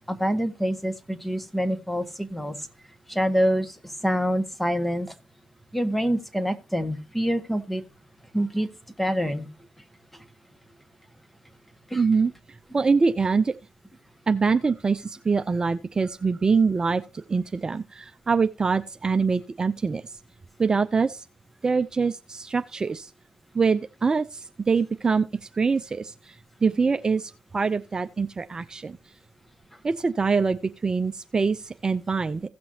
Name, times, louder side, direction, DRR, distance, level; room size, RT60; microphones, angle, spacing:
voice 1, 0.1-2.6 3.1-5.1 5.7-7.8 8.3-8.7 9.0-9.5 11.9-12.0, equal, 5° left, 1.6 m, -26 dB
voice 2, 11.9-12.3 12.7-13.5 14.3-20.2 20.6-21.2 21.6-23.1 23.5-29.0 29.8-32.4, right 4 dB, 35° right, 0.5 m, -24 dB
16.5 x 6.0 x 2.9 m
supercardioid pair, 55°, 2 cm